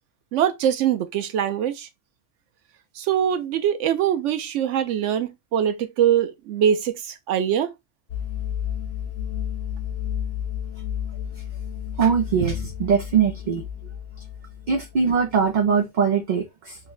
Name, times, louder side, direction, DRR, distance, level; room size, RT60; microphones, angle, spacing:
voice 1, 0.3-1.9 3.0-7.7, right 9 dB, 80° right, 0.9 m, -23 dB
sound 1, 8.1-15.5, left 9 dB, 60° left, 0.8 m, -32 dB
voice 2, 12.0-13.6 14.7-16.8, right 6 dB, 50° right, 0.6 m, -21 dB
4.6 x 2.1 x 2.3 m
omnidirectional pair, 1.3 m